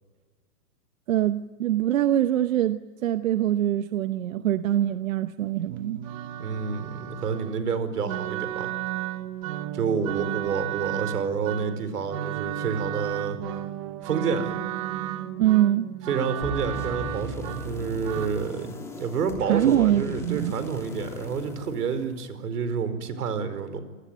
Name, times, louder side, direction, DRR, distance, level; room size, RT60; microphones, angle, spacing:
voice 1, 1.1-6.0 15.4-15.9 19.5-20.5, right 12 dB, 60° right, 11 dB, 1.1 m, -23 dB
sound 1, 5.7-18.3, right 12 dB, 20° right, 0.9 m, -34 dB
voice 2, 6.4-8.7 9.7-13.4 14.0-14.5 16.1-23.8, right 6 dB, 85° right, 12 dB, 5.0 m, -29 dB
sound 2, 16.4-22.6, left 4 dB, 5° left, 3.1 m, -38 dB
28.5 x 20.0 x 9.4 m, 1.3 s
hypercardioid pair, 170°, 45 cm